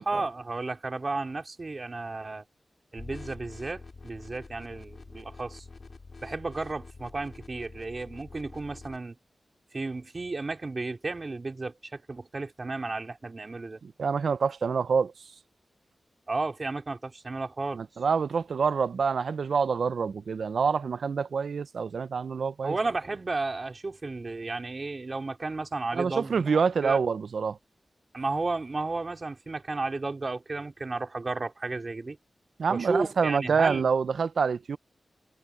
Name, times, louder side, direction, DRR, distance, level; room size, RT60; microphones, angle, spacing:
voice 1, 0.0-2.4 2.9-5.6 6.2-9.2 9.7-13.8 16.3-17.8 22.6-27.0 28.1-32.2 32.7-33.8, right 3 dB, 40° right, 4.3 m, -33 dB
sound 1, 3.0-9.0, left 3 dB, 50° left, 3.4 m, -46 dB
voice 2, 13.8-15.1 17.7-22.8 25.9-27.6 32.6-34.8, right 5 dB, 85° right, 0.6 m, -26 dB
wide cardioid pair, 90°, 0 cm